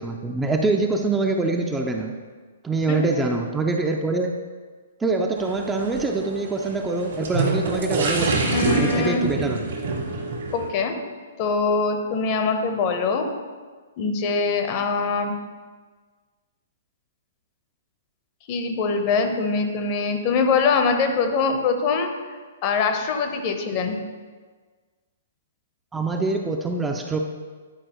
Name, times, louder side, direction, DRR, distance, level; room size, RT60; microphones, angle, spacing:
voice 1, 0.0-2.1 2.6-4.4 5.0-9.6 25.9-27.2, right 3 dB, 10° right, 2 dB, 0.5 m, -24 dB
voice 2, 2.9-3.4 8.5-9.2 10.5-10.9 11.4-13.3 14.0-15.3 18.5-24.0, left 4 dB, 35° left, 5 dB, 0.8 m, -23 dB
sound 1, 5.3-10.7, right 3 dB, 65° right, 1.6 m, -26 dB
9.8 x 4.5 x 3.0 m, 1.5 s
figure-of-eight pair, 120°, 0 cm